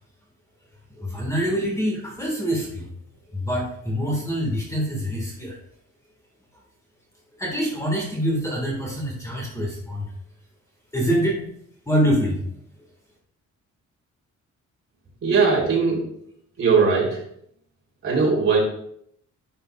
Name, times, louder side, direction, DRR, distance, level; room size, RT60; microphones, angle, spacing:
voice 1, 1.0-2.9 3.3-5.6 7.4-10.1 10.9-11.4 11.9-12.4, equal, 10° left, -3 dB, 1.8 m, -25 dB
voice 2, 15.2-16.0 16.6-17.2 18.0-18.6, right 5 dB, 45° right, -4 dB, 3.4 m, -19 dB
11.0 x 6.6 x 2.4 m, 0.68 s
cardioid pair, 145°, 30 cm